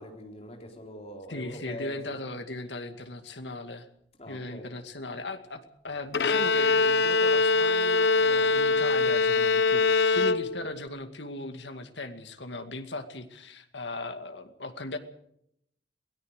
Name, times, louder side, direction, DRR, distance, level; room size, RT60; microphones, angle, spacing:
voice 1, 0.0-2.2 4.2-4.7, equal, 35° left, 3 dB, 4.0 m, -42 dB
voice 2, 1.3-3.9 4.3-15.0, left 2 dB, 90° left, 7 dB, 2.3 m, -38 dB
Bowed string instrument, 6.1-10.9, left 4 dB, 75° left, 0.8 m, -23 dB
22.0 x 18.0 x 6.6 m, 0.73 s
head